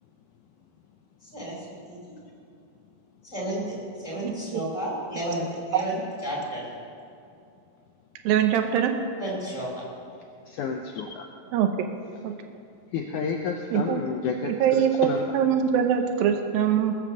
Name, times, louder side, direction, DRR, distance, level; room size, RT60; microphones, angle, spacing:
voice 1, 1.3-2.0 3.3-6.6 9.2-9.8, right 1 dB, 10° left, -5 dB, 4.3 m, -32 dB
voice 2, 4.2-4.6 5.7-5.8 8.3-9.0 11.5-11.7 12.2-12.4 13.7-14.0 14.4-17.0, right 9 dB, 80° right, 6 dB, 2.6 m, -23 dB
voice 3, 10.6-11.1 12.9-14.3 15.0-15.2, left 6 dB, 75° left, 3 dB, 1.9 m, -29 dB
20.0 x 7.4 x 6.6 m, 2.5 s
omnidirectional pair, 4.2 m